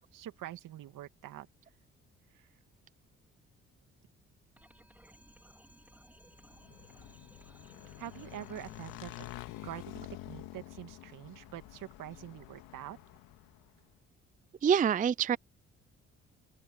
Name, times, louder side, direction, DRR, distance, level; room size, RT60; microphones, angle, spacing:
voice 1, 0.1-1.5 2.3-2.6 8.0-9.3 9.6-13.0, right 12 dB, 65° right, 2.4 m, -45 dB
sound 1, 4.6-9.8, right 1 dB, 5° right, 3.8 m, -59 dB
Motorcycle / Engine, 6.4-13.8, left 17 dB, 75° left, 2.1 m, -48 dB
voice 2, 14.6-15.4, right 8 dB, 25° right, 0.4 m, -26 dB
open air
hypercardioid pair, 50°, 34 cm